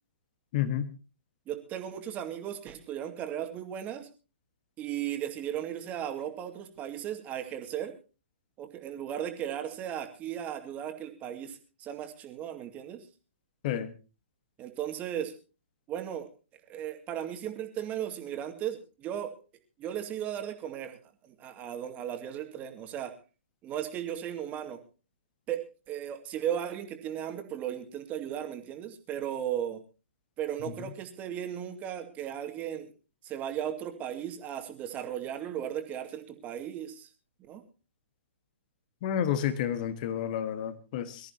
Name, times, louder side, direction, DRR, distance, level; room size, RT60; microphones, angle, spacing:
voice 1, 0.5-0.9 13.6-13.9 39.0-41.3, left 10 dB, 40° left, 11 dB, 1.6 m, -30 dB
voice 2, 1.5-4.1 4.8-7.9 8.6-13.1 14.6-15.3 15.9-16.3 16.7-19.3 19.8-21.0 21.2-23.1 23.6-24.8 25.5-29.8 30.4-32.9 33.2-37.1 37.4-37.6, right 10 dB, 20° right, 5 dB, 2.4 m, -36 dB
23.5 x 14.0 x 2.9 m, 0.33 s
figure-of-eight pair, 120°, 7 cm